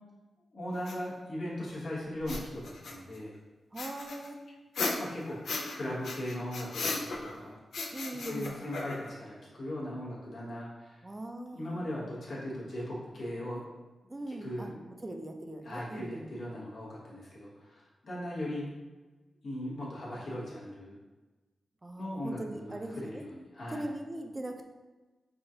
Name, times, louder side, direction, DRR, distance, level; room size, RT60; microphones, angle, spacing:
voice 1, 0.5-3.4 4.9-7.6 8.1-11.1 11.5-13.6 14.3-14.8 15.6-18.7 19.4-21.0 22.0-23.9, left 1 dB, 65° left, -5 dB, 1.1 m, -38 dB
sound 1, 0.9-1.0 2.2-3.2 3.8-5.8 6.0-7.4 7.7-9.2, left 3 dB, 80° left, 0.5 m, -36 dB
voice 2, 3.7-4.4 7.9-8.5 11.0-11.8 14.1-14.7 15.0-16.4 21.8-23.3 23.7-24.6, right 1 dB, 20° right, 4 dB, 0.4 m, -40 dB
4.8 x 2.4 x 2.7 m, 1.2 s
cardioid pair, 95°, 0 cm